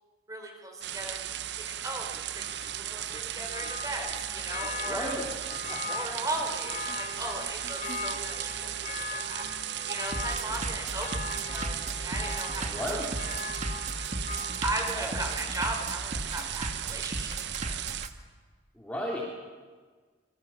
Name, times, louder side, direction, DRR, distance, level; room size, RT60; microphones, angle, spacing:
voice 1, 0.3-1.2 1.6-2.5 2.9-5.1 5.9-13.0 14.6-17.4 17.6-17.8, right 1 dB, 15° right, 3 dB, 4.1 m, -37 dB
sound 1, 0.8-18.1, right 12 dB, 60° right, 0.7 m, -36 dB
Bass drum, 2.1-18.1, right 2 dB, 35° right, 2.0 m, -37 dB
Church bell, 2.4-16.0 16.4-16.5, left 4 dB, 40° left, 2.5 m, -40 dB
voice 2, 4.8-5.3 5.7-5.8 12.7-13.1 14.9-15.2 18.8-19.3, left 1 dB, 5° left, -4 dB, 3.4 m, -34 dB
27.0 x 23.5 x 7.3 m, 1.5 s
head